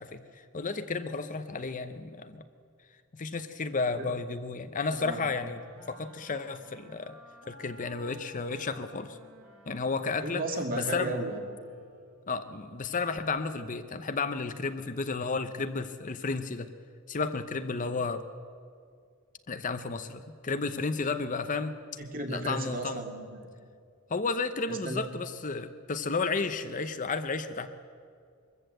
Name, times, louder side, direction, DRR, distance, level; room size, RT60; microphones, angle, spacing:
voice 1, 0.0-2.4 3.1-5.6 5.9-7.2 7.5-9.2 9.7-10.4 10.7-11.2 12.3-16.7 17.1-18.3 19.5-21.7 22.3-23.1 24.1-27.7, left 4 dB, 35° left, 10 dB, 0.7 m, -32 dB
voice 2, 4.9-5.2 10.2-11.4 22.1-23.4 24.7-25.1, right 2 dB, 40° right, 3 dB, 2.3 m, -34 dB
sound 1, 4.9-12.4, equal, 90° right, 3.1 m, -55 dB
23.0 x 14.5 x 7.9 m, 2.2 s
head